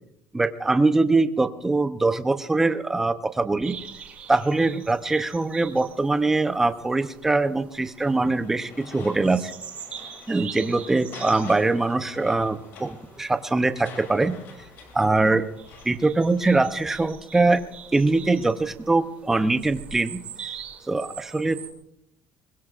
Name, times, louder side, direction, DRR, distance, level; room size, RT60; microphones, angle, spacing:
voice 1, 0.3-3.8 4.3-9.5 10.3-14.3 14.9-15.5 15.8-17.6 17.9-20.2 20.9-21.6, right 3 dB, 10° right, 10 dB, 0.6 m, -22 dB
sound 1, 3.6-21.7, right 7 dB, 35° right, 2.4 m, -44 dB
sound 2, 8.0-16.8, left 5 dB, 60° left, 3.2 m, -47 dB
24.0 x 21.5 x 2.5 m, 0.78 s
cardioid pair, 180°, 4 cm